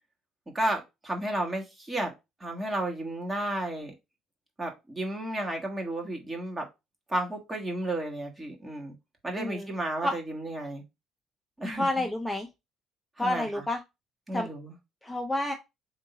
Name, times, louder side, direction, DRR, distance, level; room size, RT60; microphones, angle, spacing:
voice 1, 0.5-2.1 2.4-3.9 4.6-6.7 7.1-8.9 9.2-10.8 11.6-12.1 13.2-13.6 14.3-14.7, right 1 dB, 20° right, 1.5 m, -32 dB
voice 2, 9.4-9.7 10.0-10.1 11.8-12.5 13.2-13.8 14.3-14.5 15.0-15.5, left 1 dB, 5° left, 0.7 m, -29 dB
3.6 x 2.8 x 4.0 m
hypercardioid pair, 65°, 0 cm